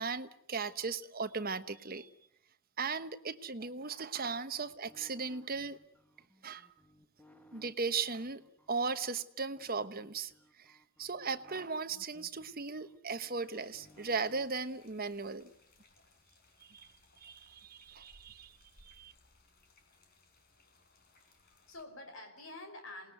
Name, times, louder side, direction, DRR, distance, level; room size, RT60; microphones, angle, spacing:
voice 1, 0.0-2.1 2.8-5.8 6.4-6.7 7.5-8.4 8.7-10.3 10.6-15.5 16.7-16.9 17.2-19.1, right 4 dB, 40° right, 1.2 m, -37 dB
sound 1, 4.1-8.9 9.6-14.5, left 1 dB, 5° left, 1.7 m, -62 dB
sound 2, 13.5-21.8, left 2 dB, 45° left, 4.4 m, -65 dB
voice 2, 21.2-23.1, left 2 dB, 65° left, 5.1 m, -49 dB
28.0 x 19.5 x 9.4 m
head